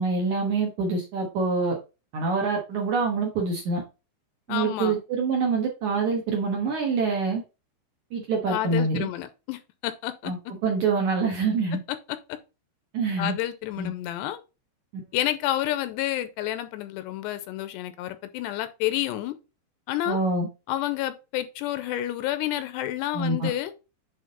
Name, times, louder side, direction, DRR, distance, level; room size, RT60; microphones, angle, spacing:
voice 1, 0.0-1.8 2.1-3.8 4.5-7.4 8.1-9.1 10.3-10.4 10.6-11.8 12.9-13.4 13.8-13.9 20.1-20.5 23.1-23.5, right 4 dB, 65° right, 2.0 m, -25 dB
voice 2, 4.5-5.0 8.5-10.3 13.2-14.4 15.1-19.3 19.9-20.2 20.7-23.7, left 13 dB, 85° left, 2.7 m, -29 dB
8.7 x 3.6 x 3.9 m
omnidirectional pair, 5.1 m